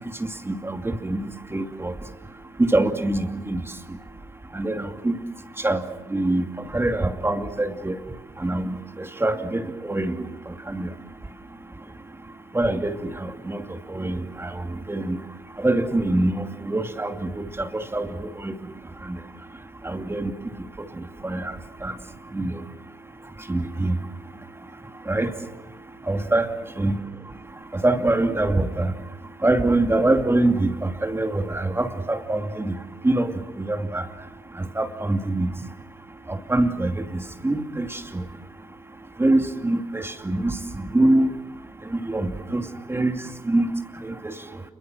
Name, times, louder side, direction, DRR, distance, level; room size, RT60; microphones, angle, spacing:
voice 1, 0.2-1.9 2.6-3.7 4.5-5.2 5.6-5.8 6.1-6.4 6.7-8.0 8.4-10.9 12.5-15.2 15.6-18.5 19.0-19.2 19.8-20.3 20.8-21.9 22.3-22.6 23.5-24.0 25.1-25.3 26.1-26.5 26.8-27.0 27.7-28.9 29.4-32.8 33.0-34.1 34.5-35.5 36.3-38.2 39.2-41.3 41.8-43.7 44.0-44.3, right 2 dB, 15° right, 5 dB, 2.6 m, -24 dB
29.0 x 22.0 x 7.7 m, 0.98 s
hypercardioid pair, 60°, 18 cm